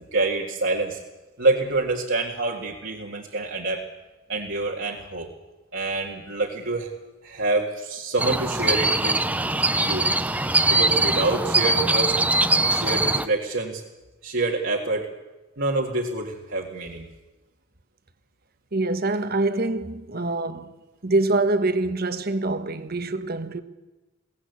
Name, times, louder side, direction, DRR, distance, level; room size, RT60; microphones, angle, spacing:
voice 1, 0.1-1.0 1.4-3.8 4.3-5.3 5.7-6.9 7.2-9.2 9.8-10.1 10.7-12.2 12.7-13.8 14.2-15.1 15.6-17.1, right 2 dB, 70° right, 2.2 m, -26 dB
sound 1, 8.2-13.3, right 2 dB, 10° right, 0.7 m, -22 dB
voice 2, 18.7-20.7 21.0-23.6, right 2 dB, 50° right, 1.3 m, -25 dB
22.5 x 17.5 x 8.2 m
head